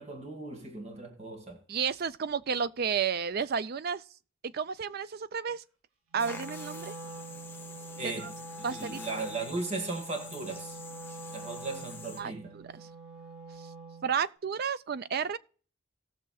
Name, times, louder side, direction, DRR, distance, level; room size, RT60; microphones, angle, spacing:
voice 1, 0.0-1.6 8.0-8.3 8.7-10.8 11.3-12.5, right 3 dB, 35° right, 1.7 m, -37 dB
voice 2, 1.7-4.0 4.5-5.6 6.1-6.9 8.0-8.3 8.6-9.0 12.2-12.9 13.6-13.7 14.0-15.4, right 6 dB, 50° right, 0.4 m, -32 dB
Wind instrument woodwind instrument, 6.1-14.1, right 2 dB, 85° right, 2.4 m, -45 dB
sound 1, 6.2-12.2, left 4 dB, 10° left, 0.9 m, -47 dB
18.5 x 6.7 x 2.3 m
head